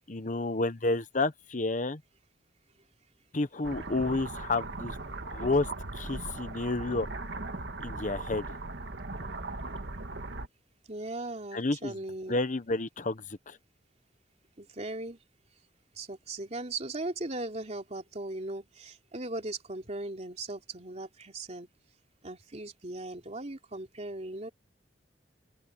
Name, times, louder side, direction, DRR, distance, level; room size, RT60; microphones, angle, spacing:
voice 1, 0.1-2.0 3.3-5.0 5.3-5.7 5.9-7.1 7.8-8.4 11.5-11.9 12.3-13.6, left 2 dB, 45° left, 1.0 m, -30 dB
sound 1, 3.6-10.5, right 2 dB, 80° right, 1.7 m, -38 dB
voice 2, 10.9-12.4 14.6-15.2 16.0-21.7 22.2-24.5, right 2 dB, 40° right, 3.1 m, -38 dB
open air
head